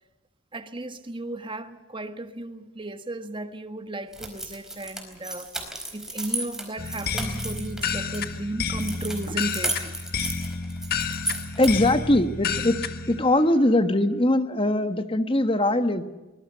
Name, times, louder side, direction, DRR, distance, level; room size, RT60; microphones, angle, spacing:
voice 1, 0.5-5.5 5.9-10.0, right 2 dB, 25° right, 1.5 m, -34 dB
sound 1, 4.1-8.2 8.8-12.0, right 1 dB, 5° right, 4.5 m, -34 dB
sound 2, 6.8-13.2, left 5 dB, 50° left, 1.7 m, -30 dB
voice 2, 11.6-12.8 13.1-16.0, left 1 dB, 25° left, 1.3 m, -21 dB
23.5 x 21.0 x 6.8 m
head